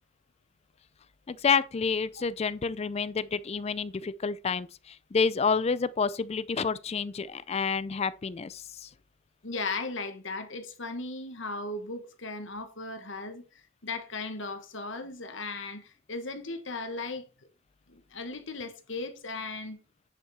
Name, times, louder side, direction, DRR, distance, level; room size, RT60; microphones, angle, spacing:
voice 1, 1.3-8.9, left 5 dB, 30° left, 0.3 m, -29 dB
voice 2, 9.4-13.4 13.8-17.3 17.9-19.8, left 3 dB, 60° left, 1.5 m, -37 dB
10.5 x 5.7 x 4.3 m
head